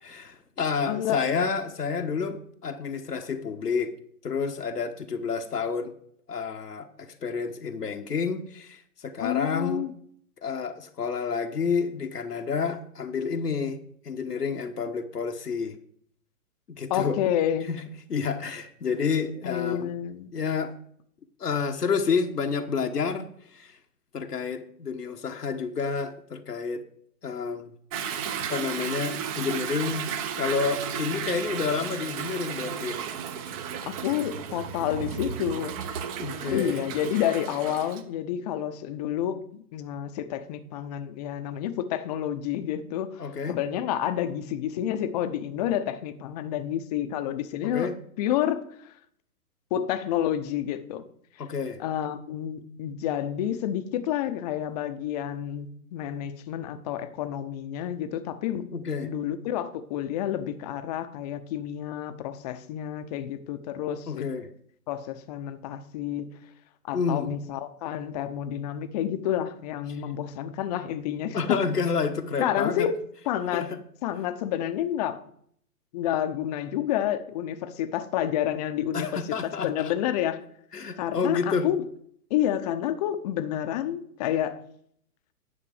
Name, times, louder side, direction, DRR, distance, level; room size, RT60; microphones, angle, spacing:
voice 1, 0.1-3.9 4.2-5.9 6.3-9.9 10.4-13.8 14.0-15.8 16.7-17.2 17.7-17.8 18.1-19.9 20.3-20.7 21.4-23.8 24.1-26.8 27.2-27.7 28.4-33.0 36.2-36.8 43.2-43.6 47.6-47.9 51.4-51.8 58.7-59.1 64.1-64.5 66.9-67.3 69.9-70.0 71.3-72.9 73.5-73.8 78.9-79.9 80.7-81.7, left 5 dB, 90° left, 1.1 m, -29 dB
voice 2, 0.9-1.3 9.2-9.9 16.9-17.7 19.4-20.3 33.9-35.7 36.5-43.2 43.5-47.9 48.2-48.9 49.7-51.1 51.8-58.7 59.0-64.3 64.9-66.3 66.8-71.6 72.4-73.7 74.0-75.2 75.9-80.5 81.0-81.8 82.3-84.6, left 10 dB, 25° left, 0.7 m, -29 dB
Toilet flush / Drip / Trickle dribble, 27.9-38.0, right 8 dB, 25° right, 0.7 m, -34 dB
10.0 x 6.8 x 4.9 m
hypercardioid pair, 125°, 46 cm